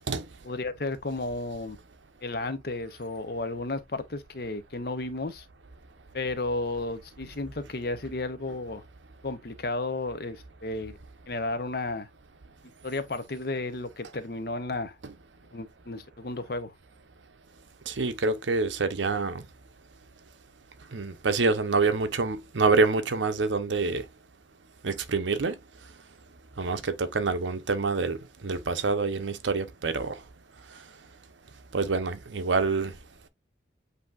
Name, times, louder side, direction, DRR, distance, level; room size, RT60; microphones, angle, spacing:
voice 1, 0.4-1.8 2.2-5.5 6.1-8.8 9.2-11.0 11.3-12.1 12.8-15.0 15.5-16.7, left 2 dB, 55° left, 0.7 m, -33 dB
voice 2, 17.9-19.4 20.9-24.0 24.8-25.6 26.6-28.2 28.4-30.2 31.7-32.9, right 4 dB, 90° right, 0.7 m, -26 dB
8.1 x 2.8 x 2.4 m
head